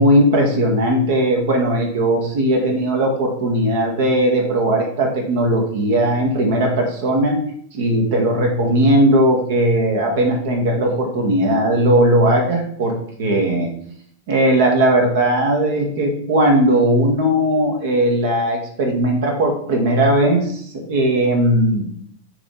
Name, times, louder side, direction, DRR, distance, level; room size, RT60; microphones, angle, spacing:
voice 1, 0.0-7.4 7.7-13.7 14.3-21.9, right 1 dB, 55° right, 2 dB, 1.5 m, -18 dB
8.7 x 3.4 x 3.8 m, 0.65 s
figure-of-eight pair, 90°, 0 cm